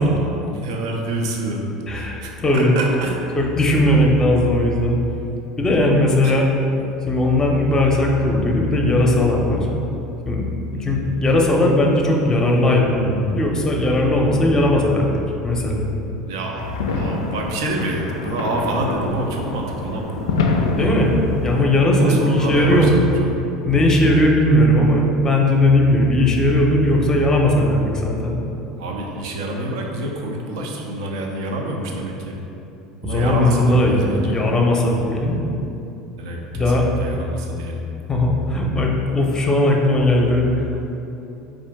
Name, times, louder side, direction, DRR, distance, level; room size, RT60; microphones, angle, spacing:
voice 1, 0.0-3.2 6.2-6.4 10.7-11.1 16.2-20.2 22.0-23.3 28.8-32.4 33.0-34.3 36.2-37.8, right 1 dB, 70° right, 0 dB, 0.5 m, -27 dB
voice 2, 1.9-2.7 3.4-5.0 5.6-6.4 7.1-9.7 10.2-10.4 10.8-15.1 15.4-15.9 20.8-21.1 21.4-22.9 23.7-28.4 33.1-35.4 36.5-36.8 38.1-40.9, left 1 dB, 20° left, 0 dB, 0.6 m, -18 dB
sound 1, 16.6-21.6, left 3 dB, 80° left, 0.3 m, -25 dB
4.3 x 2.5 x 3.5 m, 2.8 s
hypercardioid pair, 75°, 3 cm